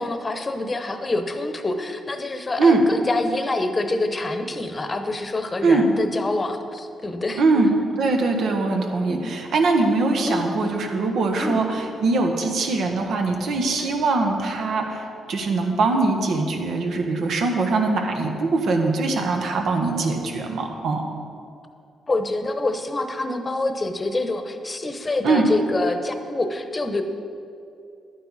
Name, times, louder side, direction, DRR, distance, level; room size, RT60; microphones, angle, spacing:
voice 1, 0.0-7.4 9.1-9.3 10.3-10.5 11.4-11.6 22.1-27.0, left 2 dB, 30° left, 7 dB, 0.9 m, -26 dB
voice 2, 7.4-21.1 25.2-25.5, right 3 dB, 75° right, 3 dB, 1.3 m, -22 dB
11.5 x 9.3 x 4.1 m, 2.5 s
cardioid pair, 75°, 0 cm